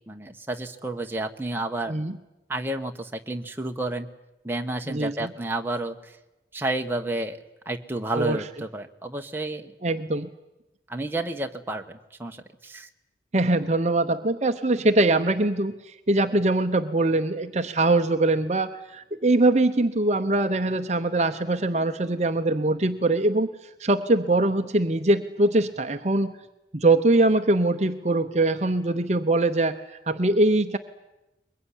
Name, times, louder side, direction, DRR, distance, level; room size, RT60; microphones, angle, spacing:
voice 1, 0.1-1.9 2.5-4.1 4.4-6.2 6.5-7.4 7.6-9.7 10.9-12.9, right 2 dB, 10° right, 4 dB, 1.2 m, -31 dB
voice 2, 4.9-5.3 8.1-8.4 9.8-10.3 13.3-23.5 23.8-26.3 26.7-30.8, right 2 dB, 40° right, 8 dB, 0.8 m, -22 dB
22.5 x 21.5 x 10.0 m, 0.98 s
head